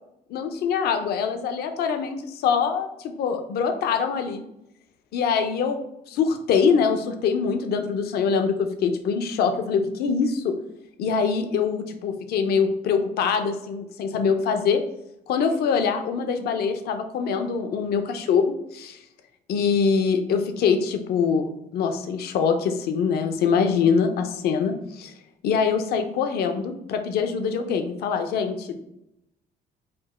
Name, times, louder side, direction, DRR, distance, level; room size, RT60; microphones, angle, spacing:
voice 1, 0.3-4.4 5.1-5.8 6.1-10.5 11.0-14.8 15.3-19.0 19.5-25.1 25.4-28.8, left 6 dB, 70° left, 7 dB, 0.6 m, -24 dB
5.1 x 2.2 x 4.2 m, 0.82 s
cardioid pair, 110°, 17 cm